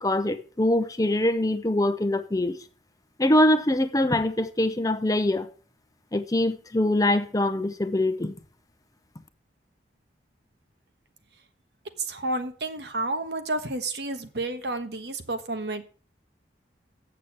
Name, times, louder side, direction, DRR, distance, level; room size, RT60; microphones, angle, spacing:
voice 1, 0.0-2.6 3.2-5.5 6.1-8.4, left 1 dB, 20° left, 0.7 m, -23 dB
voice 2, 12.0-15.8, right 2 dB, 70° right, 1.2 m, -30 dB
8.3 x 6.7 x 7.2 m
head